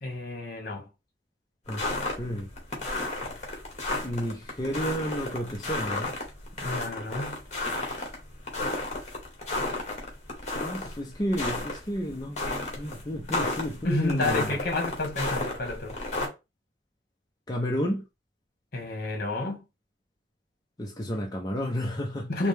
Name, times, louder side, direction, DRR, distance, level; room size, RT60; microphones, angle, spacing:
voice 1, 0.0-0.9 6.6-7.4 13.8-16.0 18.7-19.6 22.3-22.5, left 2 dB, 55° left, 1.3 m, -30 dB
sound 1, 1.7-16.3, left 2 dB, 40° left, 1.4 m, -32 dB
voice 2, 2.2-2.5 4.0-6.1 10.6-14.5 17.5-18.0 20.8-22.3, equal, 20° left, 0.5 m, -31 dB
4.9 x 2.1 x 3.3 m
head